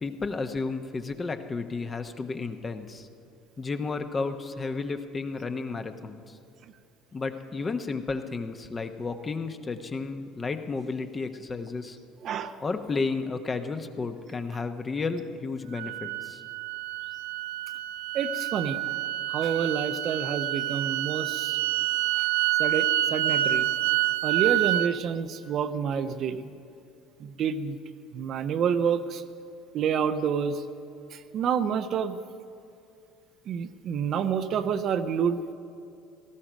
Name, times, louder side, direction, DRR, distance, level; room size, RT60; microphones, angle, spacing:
voice 1, 0.0-3.1 3.6-6.4 7.1-12.0 12.6-16.4, left 4 dB, 30° left, 8 dB, 1.1 m, -32 dB
voice 2, 12.2-12.5 18.1-18.8 19.3-21.6 22.1-22.3 22.6-23.7 24.2-26.4 27.2-27.8 28.1-29.2 29.7-30.6 31.1-32.2 33.5-35.5, right 7 dB, 55° right, 9 dB, 0.7 m, -28 dB
sound 1, 15.7-24.9, right 14 dB, 80° right, 0.4 m, -28 dB
17.5 x 13.5 x 5.1 m, 2.6 s
hypercardioid pair, 65°, 0 cm